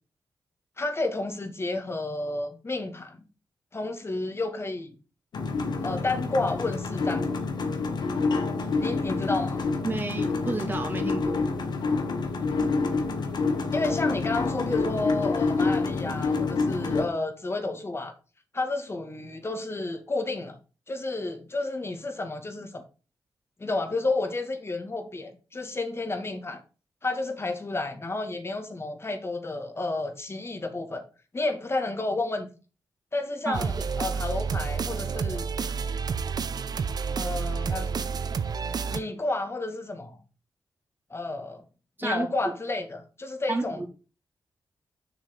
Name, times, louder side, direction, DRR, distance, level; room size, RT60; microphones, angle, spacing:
voice 1, 0.8-3.3 3.7-5.0 5.8-7.4 8.8-9.6 13.7-18.1 18.5-20.6 20.9-22.8 23.6-26.6 27.0-31.0 31.3-32.5 33.1-35.5 37.2-38.1 38.9-40.2 41.1-41.6 42.0-43.8, left 2 dB, 35° left, 2.4 m, -31 dB
sound 1, 5.3-17.1, left 4 dB, 75° left, 1.7 m, -27 dB
voice 2, 9.8-11.5 33.4-33.6 42.0-42.5 43.5-43.9, right 2 dB, 25° right, 2.7 m, -31 dB
sound 2, 33.5-39.0, right 5 dB, 65° right, 0.8 m, -29 dB
7.2 x 6.2 x 3.9 m
cardioid pair, 65°, 7 cm